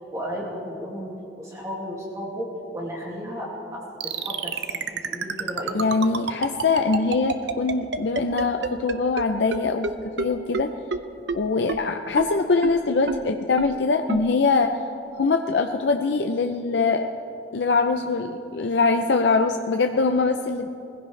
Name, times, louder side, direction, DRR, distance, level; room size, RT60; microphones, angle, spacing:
voice 1, 0.1-1.1 1.4-2.5 2.7-4.5 5.1-5.8, equal, 20° right, -4 dB, 2.2 m, -33 dB
sound 1, 4.0-9.2 9.5-9.6 9.8-9.9 10.2-10.3 10.5-10.6 10.9-11.0 11.3-11.4 11.7-11.8 12.2-12.3 12.6-12.7 13.1-13.2 13.6-13.7 14.1-14.2, right 5 dB, 90° right, 0.7 m, -26 dB
voice 2, 5.7-10.7 11.3-14.7 15.1-17.1 17.5-20.7, left 4 dB, 85° left, 5 dB, 0.5 m, -23 dB
20.5 x 16.0 x 3.3 m, 2.8 s
head